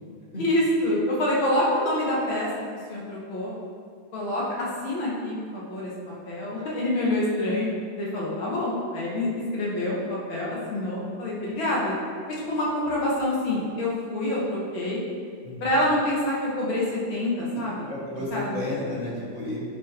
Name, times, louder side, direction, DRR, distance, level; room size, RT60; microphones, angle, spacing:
voice 1, 0.4-2.5 2.9-3.6 4.1-5.9 6.3-7.7 8.0-11.9 12.5-15.0 15.6-16.8 17.1-17.8 18.3-18.8, left 1 dB, 70° left, -5 dB, 2.3 m, -26 dB
voice 2, 17.9-19.6, left 1 dB, 25° left, -7 dB, 1.8 m, -32 dB
11.0 x 4.9 x 3.1 m, 2.1 s
omnidirectional pair, 2.3 m